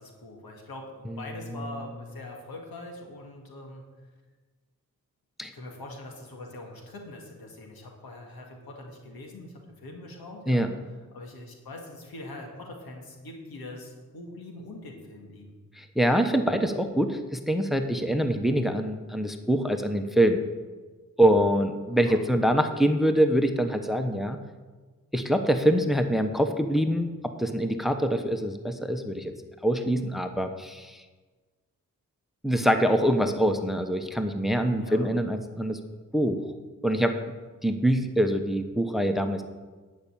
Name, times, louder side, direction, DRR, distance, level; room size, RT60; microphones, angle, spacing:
voice 1, 0.0-3.8 5.5-10.7 11.1-15.6 21.9-22.2 34.8-35.1, left 2 dB, 80° left, 1 dB, 2.1 m, -43 dB
voice 2, 1.1-1.7 5.4-5.5 10.5-10.7 15.8-20.4 21.2-24.4 25.1-29.3 29.6-31.0 32.4-35.8 36.1-36.4 36.8-37.1 37.6-39.4, equal, ahead, 7 dB, 1.0 m, -25 dB
10.0 x 5.8 x 8.5 m, 1.3 s
cardioid pair, 45°, 36 cm